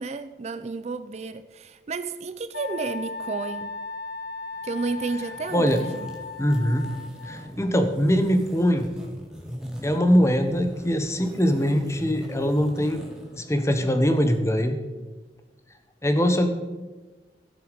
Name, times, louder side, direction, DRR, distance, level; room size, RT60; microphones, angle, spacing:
voice 1, 0.0-3.7 4.6-6.1, right 4 dB, 40° right, 0.4 m, -31 dB
Wind instrument woodwind instrument, 2.5-7.5, left 3 dB, 60° left, 1.0 m, -37 dB
sound 1, 4.5-14.4, equal, 5° right, 1.8 m, -42 dB
voice 2, 6.4-6.9 7.2-8.9 9.8-13.0 13.4-14.8 16.0-16.5, equal, 15° left, 1.0 m, -22 dB
15.5 x 6.7 x 5.1 m
head